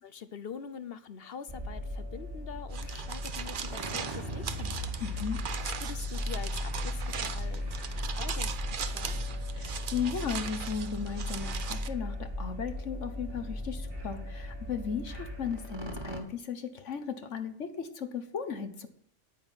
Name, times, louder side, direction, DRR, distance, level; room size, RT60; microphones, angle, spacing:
voice 1, 0.0-4.9 5.8-7.7 8.0-9.3, left 7 dB, 55° left, 13 dB, 1.0 m, -44 dB
sound 1, 1.5-16.2, left 1 dB, 20° right, 1.9 m, -37 dB
sound 2, 2.7-11.9, right 7 dB, 50° right, 0.8 m, -39 dB
voice 2, 5.0-5.4 9.5-18.9, left 6 dB, 85° left, 9 dB, 1.5 m, -36 dB
9.9 x 9.6 x 5.8 m, 0.62 s
omnidirectional pair, 1.2 m